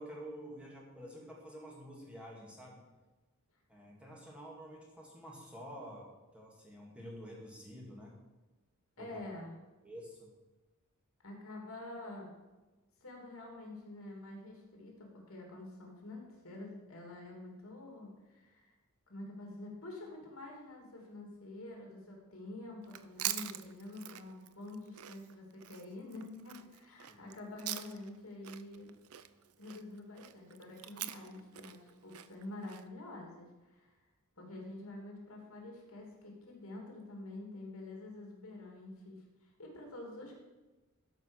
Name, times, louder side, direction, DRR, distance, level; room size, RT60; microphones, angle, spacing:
voice 1, 0.0-2.8 3.7-8.1 9.0-9.1 9.8-10.3 27.1-27.2, equal, 5° right, -3 dB, 2.1 m, -49 dB
voice 2, 9.0-9.6 11.2-12.3 13.0-18.7 19.1-28.9 29.6-33.9 34.4-40.4, left 2 dB, 70° left, 0 dB, 2.9 m, -47 dB
Chewing mastication, 22.8-28.2 28.4-32.8, right 12 dB, 80° right, 0.5 m, -44 dB
12.5 x 5.4 x 6.5 m, 1.1 s
head